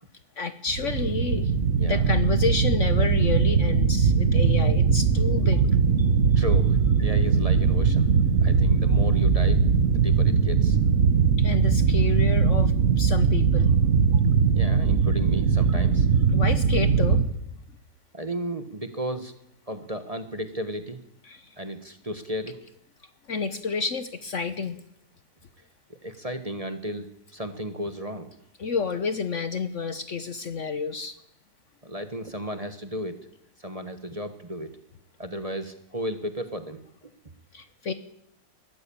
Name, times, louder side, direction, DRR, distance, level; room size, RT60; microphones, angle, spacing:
voice 1, 0.4-1.5 1.9-5.6 11.4-13.7 16.3-17.2 21.3-21.5 23.3-24.8 28.6-31.2 37.5-37.9, left 5 dB, 50° left, 12 dB, 1.2 m, -30 dB
sound 1, 0.7-17.2, right 5 dB, 55° right, 1.6 m, -21 dB
voice 2, 1.7-2.0 6.3-8.1 8.4-9.6 9.9-10.8 14.5-16.1 18.1-19.3 19.7-21.0 21.6-22.6 25.9-28.3 31.8-33.2 33.6-34.7 35.2-37.1, equal, 25° right, 9 dB, 1.3 m, -34 dB
21.5 x 14.5 x 8.7 m, 0.78 s
omnidirectional pair, 1.8 m